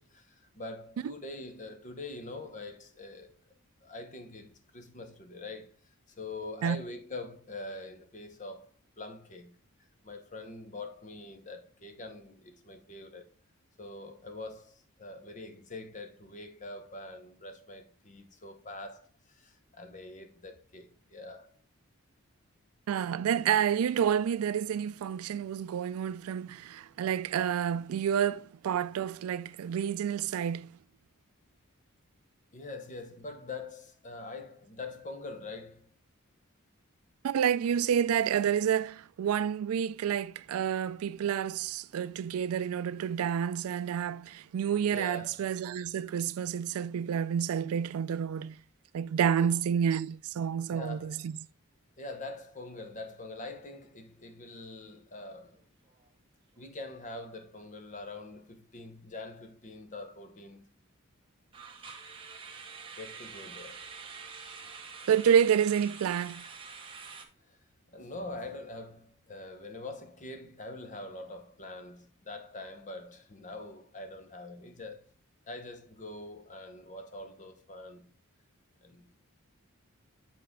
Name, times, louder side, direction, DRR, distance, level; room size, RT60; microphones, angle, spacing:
voice 1, 0.0-3.3 3.8-5.7 6.2-8.7 9.0-9.6 10.0-13.3 13.8-21.5 32.5-35.9 44.7-45.4 49.4-49.5 50.7-51.2 52.0-55.6 56.6-60.6 63.0-63.8 67.5-67.6 67.9-75.0 75.5-78.1 78.8-79.1, left 2 dB, 35° left, 0.8 m, -44 dB
voice 2, 22.9-30.8 37.2-48.6 48.9-51.4 65.1-66.4, right 8 dB, 80° right, 0.3 m, -29 dB
sound 1, 55.4-55.6 55.9-56.1 56.6-56.7 61.5-67.2, right 5 dB, 25° right, 0.9 m, -46 dB
8.1 x 4.2 x 3.6 m
head